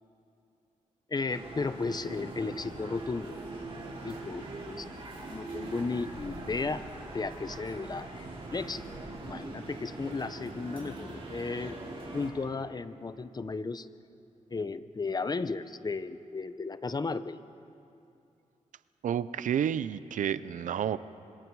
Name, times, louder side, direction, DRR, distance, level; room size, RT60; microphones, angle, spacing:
voice 1, 1.1-3.4 4.0-4.8 5.3-6.9 7.1-8.8 9.3-11.8 12.1-13.9 14.5-17.4, left 4 dB, 30° left, 13 dB, 0.8 m, -34 dB
sound 1, 1.3-12.3, right 2 dB, 45° right, 5.4 m, -42 dB
voice 2, 19.0-21.0, right 9 dB, 85° right, 16 dB, 0.6 m, -30 dB
28.0 x 26.0 x 4.7 m, 2.7 s
cardioid pair, 90°, 13 cm